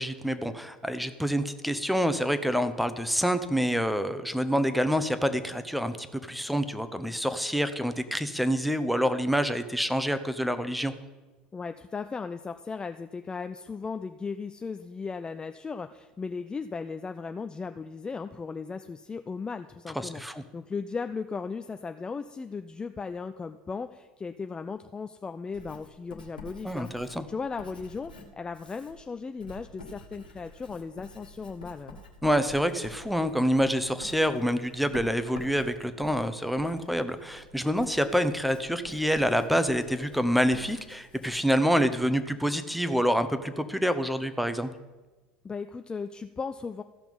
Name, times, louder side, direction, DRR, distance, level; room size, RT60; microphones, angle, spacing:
voice 1, 0.0-10.9 19.9-20.4 26.6-27.2 32.2-44.7, equal, ahead, 11 dB, 0.8 m, -27 dB
voice 2, 11.5-32.0 45.4-46.8, left 5 dB, 20° left, 9 dB, 0.4 m, -37 dB
Writing, 25.5-42.2, left 1 dB, 85° left, 1.4 m, -49 dB
14.5 x 5.9 x 5.3 m, 1.2 s
figure-of-eight pair, 75°, 5 cm